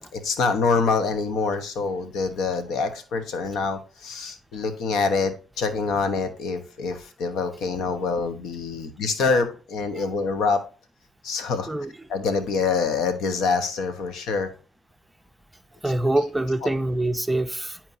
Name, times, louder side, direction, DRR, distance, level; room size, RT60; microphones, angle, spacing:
voice 1, 0.1-10.6 11.2-11.7 12.1-14.5 16.6-16.7, left 4 dB, 80° left, 1.0 m, -25 dB
voice 2, 15.8-17.8, right 1 dB, 10° right, 0.5 m, -25 dB
10.5 x 4.4 x 2.7 m
cardioid pair, 90°, 0 cm